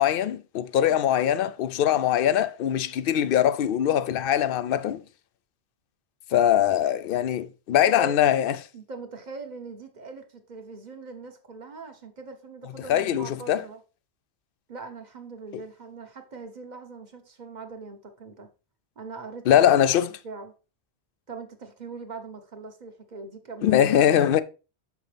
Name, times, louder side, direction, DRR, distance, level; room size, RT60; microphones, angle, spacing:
voice 1, 0.0-5.0 6.3-8.6 12.9-13.6 15.5-15.6 19.5-20.1 23.6-24.4, left 10 dB, 65° left, 0.7 m, -22 dB
voice 2, 7.8-8.2 8.7-13.8 14.7-18.5 19.0-19.7 20.2-20.5 21.3-23.8 24.2-24.3, right 4 dB, 45° right, 1.2 m, -41 dB
6.9 x 5.9 x 3.3 m
omnidirectional pair, 1.1 m